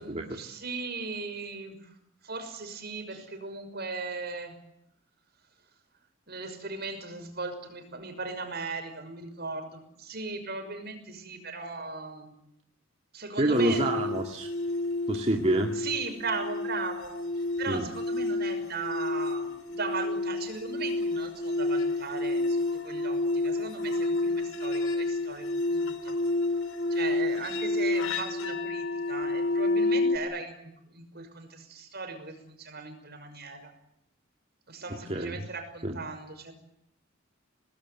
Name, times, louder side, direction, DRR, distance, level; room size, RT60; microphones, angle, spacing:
voice 1, 0.0-1.9 2.2-4.6 6.3-12.3 13.1-14.1 15.8-17.2 17.6-26.2 26.9-33.7 34.7-36.5, right 4 dB, 50° right, 7 dB, 6.0 m, -38 dB
voice 2, 13.4-14.5 15.1-15.7 17.7-17.8 35.1-35.5 35.8-36.0, right 1 dB, 35° right, 2 dB, 2.2 m, -27 dB
sound 1, 13.5-30.2, left 2 dB, 90° left, 3.3 m, -29 dB
26.5 x 20.0 x 9.4 m, 0.79 s
head